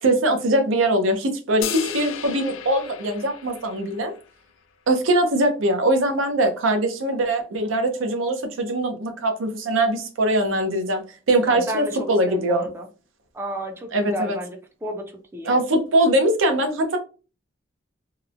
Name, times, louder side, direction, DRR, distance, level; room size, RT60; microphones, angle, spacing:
voice 1, 0.0-4.1 4.9-11.0 11.3-12.7 13.9-14.4 15.5-17.0, right 1 dB, 90° right, 6 dB, 0.6 m, -22 dB
sound 1, 1.6-4.2, left 8 dB, 90° left, 0.3 m, -34 dB
voice 2, 11.4-12.9 13.3-15.6, right 1 dB, 10° right, 3 dB, 0.4 m, -32 dB
2.9 x 2.0 x 2.4 m, 0.34 s
head